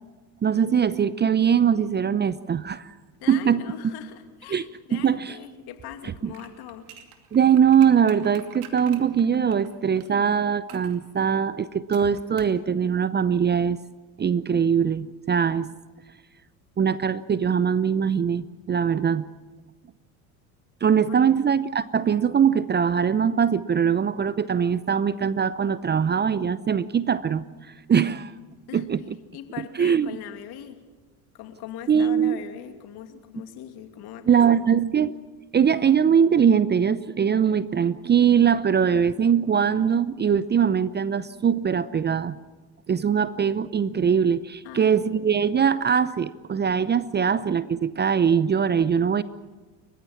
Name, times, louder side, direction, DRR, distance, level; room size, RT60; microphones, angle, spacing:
voice 1, 0.4-2.9 3.3-3.6 4.5-5.4 6.0-6.3 7.3-13.8 14.2-15.7 16.8-19.2 20.8-27.4 27.9-28.3 28.7-29.0 29.8-30.1 31.9-32.4 34.3-35.1 35.5-42.4 42.9-49.2, right 7 dB, 25° right, 16 dB, 0.7 m, -22 dB
voice 2, 3.2-6.8 21.1-21.6 28.7-28.8 29.3-30.8 31.3-34.7 44.6-45.0, left 11 dB, 55° left, 6 dB, 2.8 m, -41 dB
sound 1, 6.3-10.1 10.7-11.0 11.9-12.6 12.9-13.0, right 10 dB, 75° right, 2.6 m, -47 dB
30.0 x 15.5 x 7.2 m, 1.3 s
hypercardioid pair, 70°, 44 cm